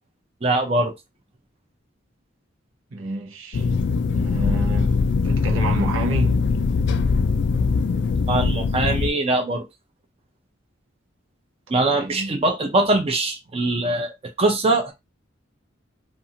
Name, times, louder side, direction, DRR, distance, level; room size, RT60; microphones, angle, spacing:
voice 1, 0.4-0.9 8.3-9.6 11.7-14.9, right 2 dB, 30° right, 0.6 m, -22 dB
voice 2, 2.9-3.7 4.1-4.9 5.2-6.4 11.7-12.4, right 2 dB, 90° right, 0.8 m, -29 dB
sound 1, 3.5-9.1, left 4 dB, 60° left, 0.3 m, -21 dB
2.6 x 2.4 x 2.7 m
head